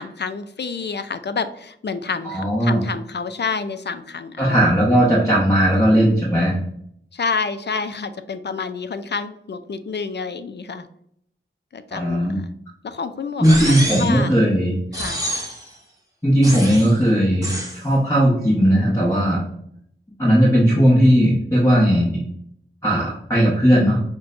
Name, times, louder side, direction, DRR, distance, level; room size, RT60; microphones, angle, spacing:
voice 1, 0.0-4.7 7.1-10.9 11.7-12.5 12.8-14.3 14.9-15.2, left 5 dB, 55° left, 10 dB, 0.4 m, -29 dB
voice 2, 2.2-2.8 4.4-6.6 11.9-12.4 13.4-14.7 16.2-19.4 20.2-22.2 22.8-24.0, equal, 15° left, -6 dB, 1.0 m, -17 dB
sound 1, 13.4-14.2 14.9-15.7 16.4-17.0 17.4-17.8, right 1 dB, 15° right, 1.0 m, -27 dB
6.1 x 2.2 x 2.5 m, 0.69 s
wide cardioid pair, 60°, 21 cm